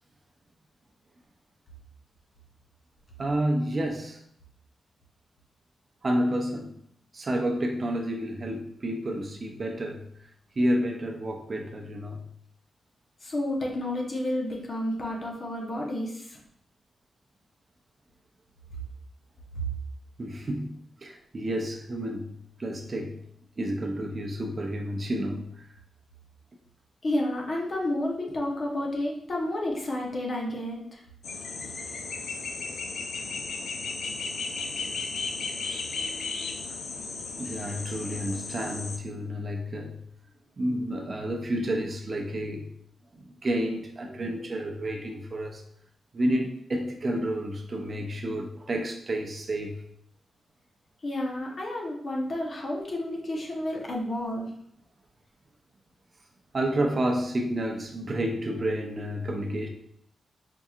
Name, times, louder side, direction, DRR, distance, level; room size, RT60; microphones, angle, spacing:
voice 1, 3.2-4.2 6.0-6.7 7.1-10.1 10.6-12.2 20.2-22.3 22.6-23.2 23.6-25.6 37.4-40.0 40.6-42.6 43.1-45.6 46.1-49.8 56.5-59.7, right 1 dB, 35° right, 2 dB, 0.5 m, -30 dB
voice 2, 13.2-16.4 19.5-19.7 27.0-31.0 51.0-54.5, left 1 dB, 45° left, -1 dB, 0.9 m, -31 dB
sound 1, 31.2-39.0, left 4 dB, 75° left, 0.4 m, -35 dB
4.5 x 2.7 x 2.4 m, 0.68 s
wide cardioid pair, 115°, 0 cm